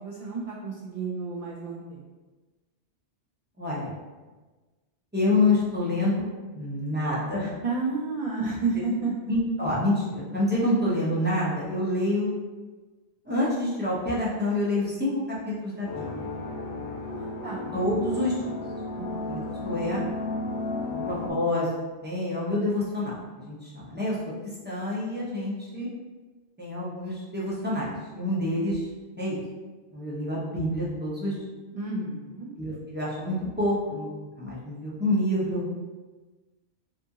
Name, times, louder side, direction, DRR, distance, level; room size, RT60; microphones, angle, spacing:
voice 1, 0.0-2.0 7.6-9.3 16.9-17.7 19.0-19.3 31.7-32.5, right 3 dB, 65° right, -4 dB, 0.3 m, -31 dB
voice 2, 3.6-3.9 5.1-6.3 6.5-7.5 9.3-12.3 13.3-15.1 15.4-16.3 17.7-18.5 19.3-20.0 20.9-21.7 22.0-23.1 23.5-25.9 26.6-27.9 28.1-28.9 29.2-29.4 29.9-31.3 32.6-34.1 34.4-35.6, left 1 dB, 10° right, -8 dB, 0.7 m, -27 dB
sound 1, 15.8-21.3, left 2 dB, 80° left, 0.9 m, -33 dB
2.7 x 2.5 x 3.6 m, 1.3 s
omnidirectional pair, 1.1 m